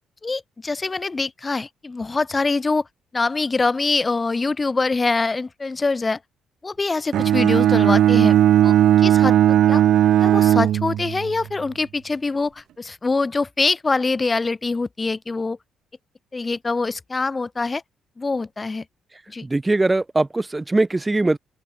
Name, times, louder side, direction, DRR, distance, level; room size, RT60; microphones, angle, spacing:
voice 1, 0.2-2.9 3.1-6.2 6.6-8.4 8.6-9.8 10.2-15.6 16.3-17.8 18.2-18.8 19.3-19.4, left 3 dB, 25° left, 1.5 m, -24 dB
Bowed string instrument, 7.1-11.4, right 11 dB, 75° right, 0.5 m, -16 dB
voice 2, 19.4-21.4, right 2 dB, 15° right, 1.0 m, -21 dB
open air
cardioid pair, 90°, 0 cm